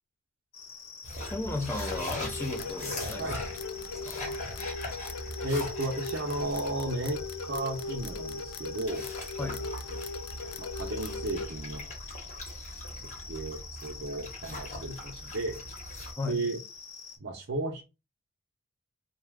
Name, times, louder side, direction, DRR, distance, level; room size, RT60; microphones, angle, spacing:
sound 1, 0.5-17.2, left 5 dB, 70° left, 0.8 m, -46 dB
sound 2, 1.0-16.1, left 1 dB, 35° left, 1.0 m, -41 dB
voice 1, 1.3-3.3 4.0-4.4 9.4-9.6 16.2-16.5, left 3 dB, 10° left, 0.4 m, -35 dB
sound 3, 1.6-11.5, left 3 dB, 90° left, 0.4 m, -39 dB
voice 2, 5.4-9.1 9.9-10.0 10.6-11.9 12.9-13.0 13.3-15.6 16.3-16.6 17.2-17.8, right 2 dB, 55° right, 0.6 m, -34 dB
2.7 x 2.2 x 3.4 m
head